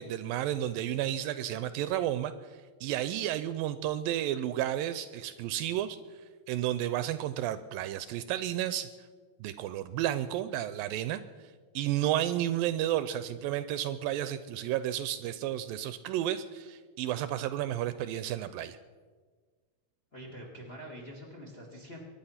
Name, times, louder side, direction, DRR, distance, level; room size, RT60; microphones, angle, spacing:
voice 1, 0.0-6.0 6.5-8.9 9.4-11.2 11.8-18.8, right 12 dB, 80° right, 13 dB, 2.2 m, -32 dB
voice 2, 20.1-22.0, equal, 20° left, 1 dB, 1.8 m, -45 dB
24.0 x 10.5 x 5.7 m, 1.5 s
omnidirectional pair, 4.3 m